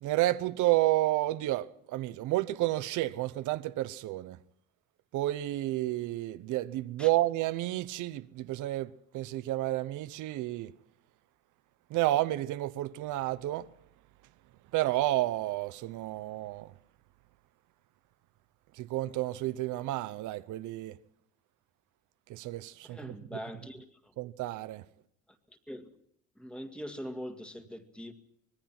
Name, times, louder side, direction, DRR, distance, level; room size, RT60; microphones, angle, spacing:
voice 1, 0.0-4.4 5.1-10.7 11.9-13.7 14.7-16.7 18.8-21.0 22.3-23.4 24.2-24.8, right 16 dB, 85° right, 0.9 m, -31 dB
voice 2, 22.8-24.1 25.5-25.9 26.4-28.1, equal, 5° left, 2.0 m, -42 dB
25.0 x 21.5 x 6.0 m
cardioid pair, 160°, 30 cm